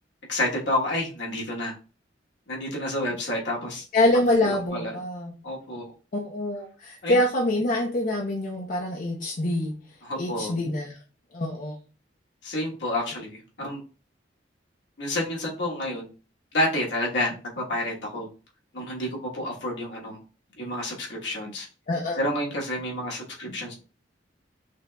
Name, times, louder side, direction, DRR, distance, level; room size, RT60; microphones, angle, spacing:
voice 1, 0.3-1.7 2.5-3.8 4.4-4.9 5.4-5.9 7.0-7.2 10.0-10.5 12.4-13.8 15.0-16.1 16.5-18.3 18.7-20.2 20.6-21.7 22.2-23.7, left 1 dB, 70° left, -2 dB, 1.3 m, -29 dB
voice 2, 3.9-5.3 6.1-9.7 10.2-11.0 11.3-11.7 21.9-22.2, left 1 dB, 45° left, -1 dB, 0.7 m, -25 dB
5.9 x 2.9 x 2.3 m, 0.35 s
head